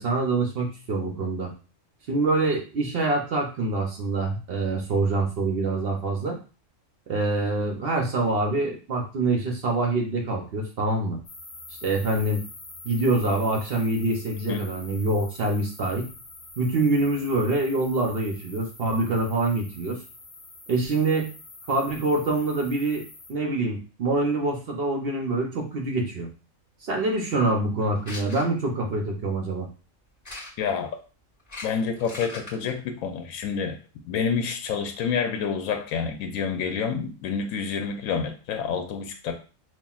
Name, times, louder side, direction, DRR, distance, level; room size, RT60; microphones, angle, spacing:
voice 1, 0.0-1.5 2.1-6.4 7.1-11.2 11.8-12.4 12.8-16.1 16.6-20.0 20.7-21.3 21.7-23.0 23.3-26.3 26.8-29.7, right 2 dB, 55° right, 2 dB, 0.7 m, -25 dB
sound 1, 11.2-23.3, left 3 dB, 55° left, 1.2 m, -45 dB
sound 2, 28.0-28.4 30.2-30.7 31.4-32.7, left 2 dB, 15° left, 1.2 m, -39 dB
voice 2, 30.6-30.9 31.6-33.8 34.0-39.3, left 6 dB, 80° left, 6 dB, 1.0 m, -28 dB
5.5 x 2.4 x 2.3 m, 0.36 s
omnidirectional pair, 1.4 m